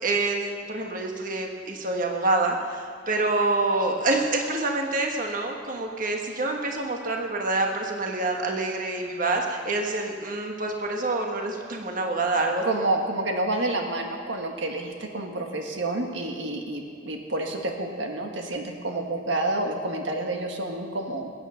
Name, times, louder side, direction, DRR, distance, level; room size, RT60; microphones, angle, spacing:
voice 1, 0.0-12.6, right 2 dB, 45° right, 2 dB, 1.4 m, -27 dB
voice 2, 12.6-21.3, right 2 dB, 75° right, 3 dB, 1.5 m, -29 dB
21.0 x 9.2 x 5.7 m, 2.1 s
head